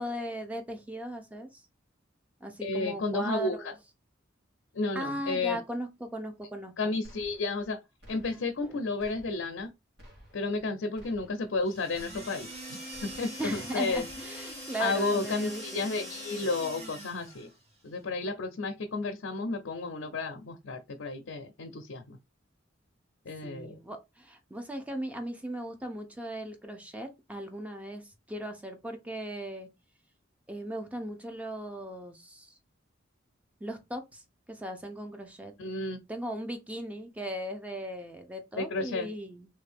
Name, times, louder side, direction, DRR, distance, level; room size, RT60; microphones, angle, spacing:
voice 1, 0.0-1.5 2.4-3.7 4.9-6.9 8.3-8.4 8.6-8.9 13.4-16.1 23.4-29.7 30.5-32.6 33.6-34.2 34.5-35.5 36.1-39.5, right 1 dB, 5° right, 0.6 m, -38 dB
voice 2, 2.6-3.7 4.7-5.6 6.8-7.8 8.1-9.7 10.3-12.5 13.0-14.0 14.8-17.5 17.8-22.2 23.3-23.8 35.6-36.0 38.6-39.1, left 3 dB, 80° left, 0.5 m, -32 dB
sound 1, 7.0-7.7 8.0-8.7 9.0-9.7 10.0-10.7 11.0-11.6 11.9-12.6 12.9-13.6 13.9-14.6, equal, 55° right, 1.2 m, -54 dB
sound 2, 11.6-17.5, equal, 35° right, 1.3 m, -43 dB
3.2 x 2.6 x 3.4 m
head